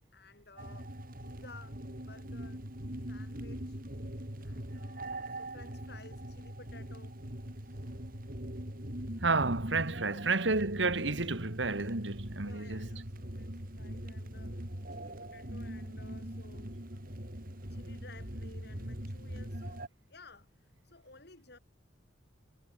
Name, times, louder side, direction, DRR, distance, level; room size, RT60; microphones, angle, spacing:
voice 1, 0.1-1.8 2.0-2.6 3.1-3.8 4.4-7.2 7.5-7.9 10.1-10.3 12.4-16.8 17.7-21.6, left 3 dB, 60° left, 5.6 m, -56 dB
sound 1, 0.6-19.9, right 1 dB, 50° right, 5.1 m, -42 dB
voice 2, 9.2-12.9, right 3 dB, 80° right, 2.1 m, -31 dB
head